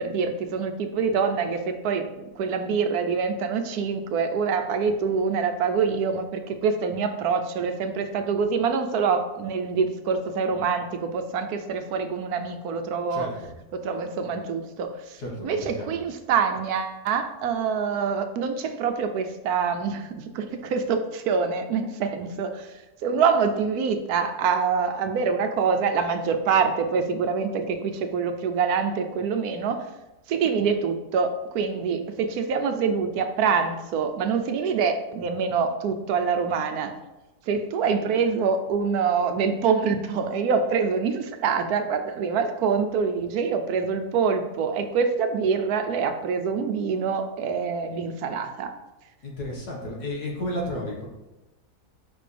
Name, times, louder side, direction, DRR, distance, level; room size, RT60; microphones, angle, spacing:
voice 1, 0.0-13.3 13.7-29.9 30.3-36.9 37.5-48.7, right 5 dB, 75° right, 7 dB, 1.1 m, -25 dB
voice 2, 13.1-13.5 15.2-16.0 49.2-51.1, left 1 dB, 75° left, -2 dB, 2.1 m, -32 dB
7.0 x 5.3 x 3.3 m, 1.0 s
omnidirectional pair, 1.7 m